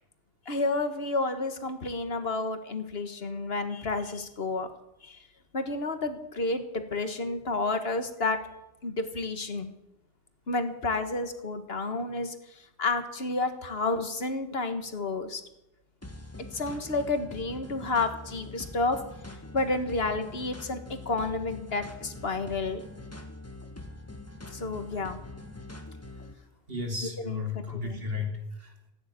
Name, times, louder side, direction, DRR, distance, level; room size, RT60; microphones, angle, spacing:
voice 1, 0.5-4.7 5.0-5.2 5.5-8.4 8.8-9.7 10.5-12.3 12.8-15.4 16.5-19.0 19.5-22.8 24.5-25.2 27.2-28.0, left 3 dB, 70° left, 8 dB, 1.8 m, -30 dB
sound 1, 16.0-26.3, left 2 dB, 15° left, 1.5 m, -44 dB
voice 2, 26.7-28.9, left 3 dB, 65° right, 3 dB, 3.0 m, -34 dB
15.0 x 10.0 x 9.3 m, 0.87 s
omnidirectional pair, 1.1 m